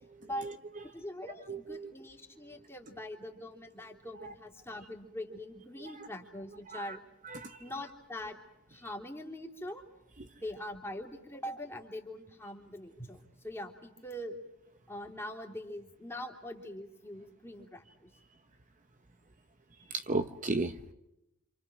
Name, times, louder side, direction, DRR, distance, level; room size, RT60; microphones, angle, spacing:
voice 1, 0.2-0.5 1.5-1.9 4.2-4.3 5.8-6.1 6.7-7.0 7.2-7.6 10.2-10.3 19.9-20.9, right 3 dB, 40° right, 9 dB, 0.9 m, -36 dB
voice 2, 0.8-7.0 7.6-8.4 8.7-9.8 10.4-14.4 14.9-18.1, left 1 dB, 10° left, 1 dB, 3.2 m, -43 dB
28.0 x 27.5 x 6.2 m, 0.86 s
head